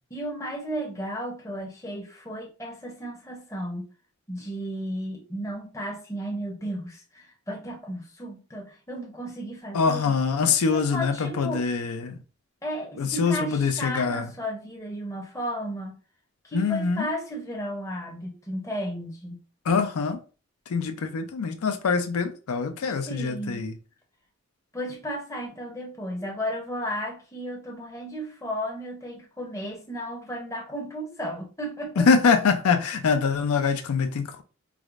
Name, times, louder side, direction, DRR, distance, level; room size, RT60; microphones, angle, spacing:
voice 1, 0.1-3.9 4.3-10.1 10.7-11.7 12.6-15.9 16.4-19.4 23.1-23.7 24.7-32.1, equal, 15° left, 0.6 m, -34 dB
voice 2, 9.7-12.2 13.0-14.3 16.5-17.1 19.7-20.2 20.7-23.7 32.0-34.4, left 5 dB, 80° left, 0.4 m, -24 dB
4.7 x 2.0 x 2.4 m
head